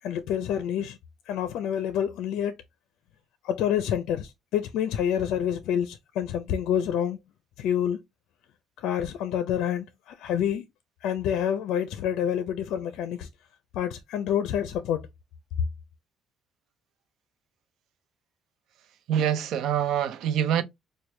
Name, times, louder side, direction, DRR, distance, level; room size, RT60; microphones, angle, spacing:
voice 1, 0.0-1.0 1.3-2.6 3.4-7.2 7.6-8.0 8.8-10.6 11.0-13.3 13.7-15.0, left 9 dB, 80° left, 0.4 m, -28 dB
voice 2, 19.1-20.6, right 9 dB, 70° right, 0.5 m, -25 dB
4.6 x 2.2 x 3.2 m
cardioid pair, 115°, 0 cm